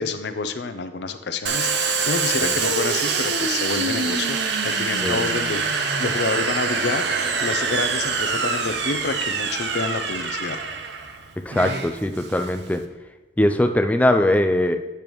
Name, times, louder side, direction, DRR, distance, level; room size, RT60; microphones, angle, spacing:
voice 1, 0.0-4.4 4.6-7.0 7.4-10.6, left 4 dB, 65° left, 10 dB, 0.5 m, -28 dB
Domestic sounds home sounds, 1.5-12.8, right 5 dB, 70° right, 0.7 m, -25 dB
voice 2, 11.5-12.8 13.4-14.8, left 1 dB, 10° left, 6 dB, 0.3 m, -20 dB
8.7 x 6.8 x 3.1 m, 1.2 s
head